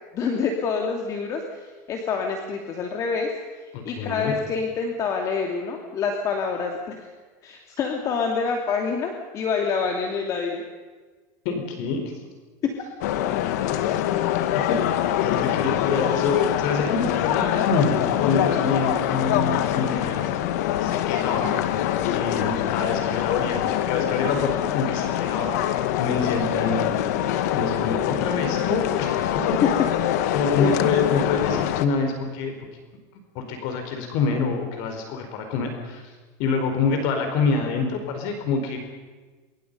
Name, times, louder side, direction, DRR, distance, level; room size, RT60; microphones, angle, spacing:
voice 1, 0.1-7.1 7.4-10.6 12.6-12.9 13.6-13.7 29.6-29.7 30.6-30.7, left 5 dB, 40° left, 3 dB, 2.7 m, -27 dB
voice 2, 3.7-4.3 11.4-12.0 14.7-14.8 15.2-20.3 20.8-21.5 22.1-26.8 27.5-29.1 30.3-32.7 33.3-36.1 36.4-38.8, left 4 dB, 60° left, 4 dB, 4.6 m, -26 dB
sound 1, 13.0-31.9, left 11 dB, 80° left, 1.6 m, -24 dB
26.0 x 23.5 x 5.5 m, 1.3 s
supercardioid pair, 135°, 9 cm